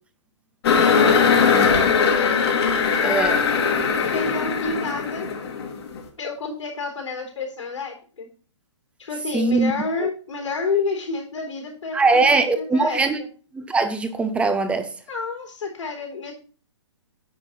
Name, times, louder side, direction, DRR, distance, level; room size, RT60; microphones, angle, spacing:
sound 1, 0.6-6.0, left 6 dB, 55° left, 1.9 m, -20 dB
voice 1, 0.9-2.2 3.0-5.3 6.2-8.3 9.0-13.3 15.1-16.3, left 4 dB, 80° left, 2 dB, 3.9 m, -30 dB
voice 2, 3.0-3.4 9.3-9.7 11.9-13.2 13.5-14.9, right 3 dB, 5° right, 9 dB, 0.6 m, -20 dB
9.2 x 4.4 x 5.6 m, 0.39 s
hypercardioid pair, 140°, 16 cm